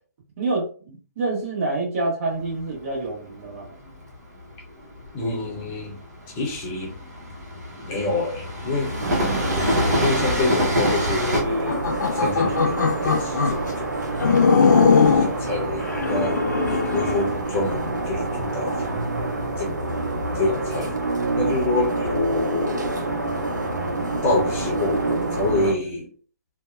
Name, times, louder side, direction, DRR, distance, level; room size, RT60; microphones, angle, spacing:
voice 1, 0.4-3.7, right 2 dB, 50° right, -2 dB, 1.3 m, -27 dB
Train, 2.3-11.4, equal, 70° right, 1.0 m, -26 dB
voice 2, 5.1-6.0 6.3-6.9 7.8-8.9 10.0-11.9 12.1-14.1 15.1-18.8 19.6-19.7 20.3-20.9 21.4-23.0 24.2-26.1, left 2 dB, 25° left, -1 dB, 0.7 m, -27 dB
sound 1, 9.0-25.7, right 2 dB, 90° right, 0.7 m, -27 dB
sound 2, 11.5-13.6 14.2-15.4 15.9-17.3, left 5 dB, 80° left, 0.4 m, -20 dB
2.6 x 2.2 x 2.4 m, 0.42 s
figure-of-eight pair, 135°, 9 cm